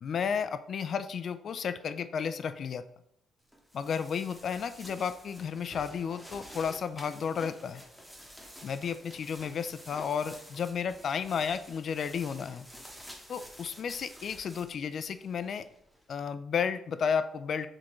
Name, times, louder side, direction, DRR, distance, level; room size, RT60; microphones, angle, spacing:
voice 1, 0.0-2.8 3.7-7.8 8.6-12.7 13.3-15.7 16.1-17.7, left 7 dB, 55° left, 12 dB, 0.3 m, -33 dB
sound 1, 3.5-16.0, equal, ahead, 1.1 m, -50 dB
4.9 x 3.6 x 3.0 m, 0.74 s
cardioid pair, 90°, 0 cm